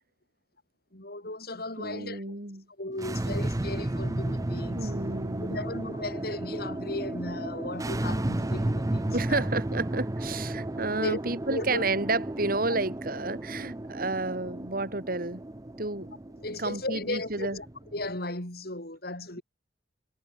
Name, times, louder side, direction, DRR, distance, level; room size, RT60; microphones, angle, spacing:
voice 1, 0.9-2.2 2.8-9.4 10.7-11.2 11.5-11.9 16.4-17.7 17.9-19.4, left 2 dB, 60° left, 7.8 m, -36 dB
voice 2, 1.8-2.7 4.7-5.7 9.1-15.4 15.8-16.2 16.6-17.6, right 3 dB, 55° right, 4.0 m, -31 dB
sound 1, 2.9-18.2, right 1 dB, 20° right, 0.6 m, -33 dB
head